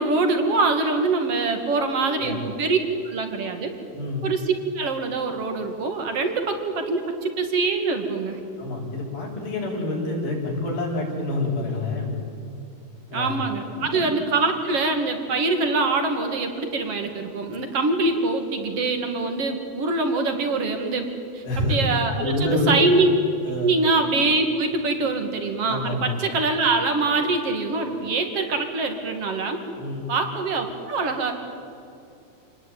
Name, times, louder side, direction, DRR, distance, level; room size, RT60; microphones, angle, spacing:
voice 1, 0.0-2.8 3.0-3.8 4.2-8.4 13.1-23.1 23.6-29.6 30.1-31.3, right 3 dB, 45° right, 5 dB, 3.0 m, -24 dB
voice 2, 2.0-2.4 3.9-4.3 8.6-12.1 13.1-13.3 13.8-14.1 21.5-21.7 22.2-22.7 23.4-23.7 25.6-26.1 29.8-30.0, left 2 dB, 80° left, -3 dB, 8.1 m, -27 dB
28.0 x 19.5 x 9.2 m, 2.6 s
omnidirectional pair, 4.2 m